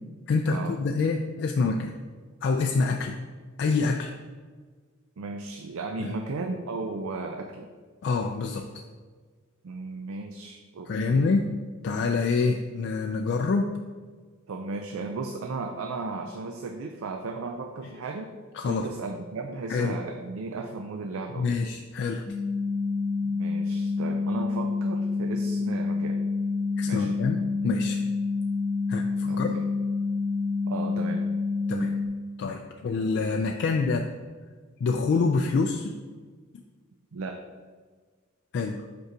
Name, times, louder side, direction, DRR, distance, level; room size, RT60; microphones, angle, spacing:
voice 1, 0.3-1.9 2.4-3.2 3.6-4.1 6.0-6.2 8.0-8.7 10.9-11.5 11.8-13.7 18.5-18.9 19.7-20.0 21.4-22.2 26.8-28.0 28.9-29.6 31.7-32.0 32.4-34.1 34.8-35.9 38.5-38.8, left 4 dB, 55° left, 4 dB, 0.3 m, -26 dB
voice 2, 5.2-7.7 9.6-11.3 14.5-18.3 18.7-21.6 23.2-26.2 26.9-27.2 29.2-29.7 30.7-31.2 37.1-37.4, right 3 dB, 70° right, 5 dB, 0.4 m, -35 dB
sound 1, 22.3-32.1, left 4 dB, 5° left, 0.6 m, -28 dB
5.4 x 4.6 x 3.8 m, 1.5 s
head